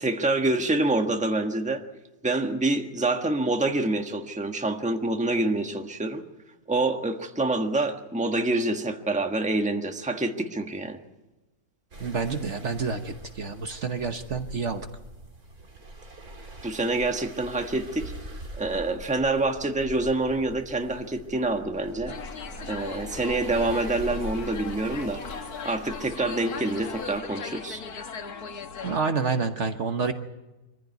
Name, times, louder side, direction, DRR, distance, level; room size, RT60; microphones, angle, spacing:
voice 1, 0.0-1.8 2.2-6.2 6.7-11.0 16.6-18.1 18.6-22.1 22.7-25.2 25.6-27.8, right 2 dB, 5° right, 5 dB, 1.3 m, -26 dB
sound 1, 11.9-27.2, right 1 dB, 70° right, 3.3 m, -42 dB
voice 2, 12.0-14.9 28.8-30.1, right 5 dB, 50° right, 7 dB, 1.4 m, -28 dB
sound 2, 22.1-29.0, left 6 dB, 85° left, 1.8 m, -38 dB
24.5 x 15.0 x 9.4 m, 1.1 s
omnidirectional pair, 1.6 m